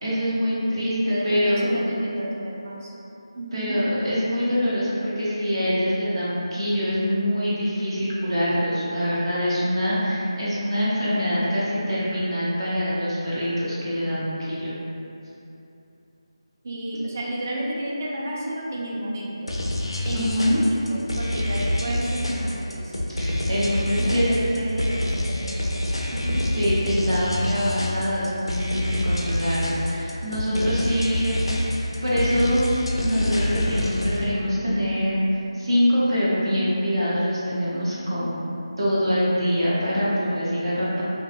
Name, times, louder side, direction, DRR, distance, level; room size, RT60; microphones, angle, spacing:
voice 1, 0.0-1.7 3.5-14.7 20.1-20.6 23.2-24.2 26.6-31.5 32.0-32.7 33.0-35.2 35.5-38.5 38.8-41.0, equal, 60° right, -9 dB, 0.8 m, -24 dB
voice 2, 0.9-2.9 3.4-3.8 16.6-19.5 20.0-23.1 23.7-25.7 26.1-26.5, right 1 dB, 30° right, -4 dB, 0.3 m, -31 dB
sound 1, 19.5-34.2, left 1 dB, 70° left, 0.3 m, -26 dB
2.6 x 2.1 x 2.5 m, 2.9 s
figure-of-eight pair, 160°, 3 cm